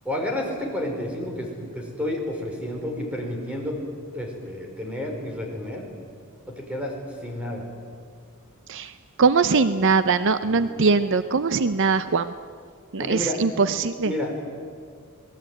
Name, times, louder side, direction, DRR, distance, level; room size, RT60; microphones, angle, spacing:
voice 1, 0.0-3.8 4.1-5.8 6.5-6.9 7.2-7.6 10.4-10.9 13.0-13.4 14.0-14.4, left 1 dB, 5° right, 1 dB, 5.1 m, -30 dB
voice 2, 9.2-12.3 12.9-14.1, right 4 dB, 60° right, 12 dB, 0.7 m, -21 dB
27.5 x 19.5 x 9.2 m, 2.1 s
head